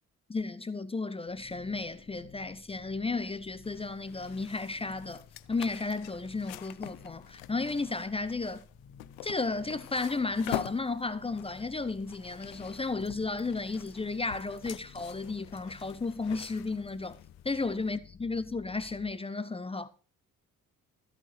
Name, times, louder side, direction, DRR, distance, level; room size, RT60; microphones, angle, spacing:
voice 1, 0.3-8.6 9.2-17.2 17.4-19.9, left 3 dB, 15° left, 0.6 m, -33 dB
sound 1, 1.3-19.1, left 7 dB, 35° left, 1.3 m, -54 dB
sound 2, 3.6-17.9, left 16 dB, 65° left, 0.7 m, -45 dB
13.5 x 8.4 x 4.5 m
figure-of-eight pair, 45°, 44 cm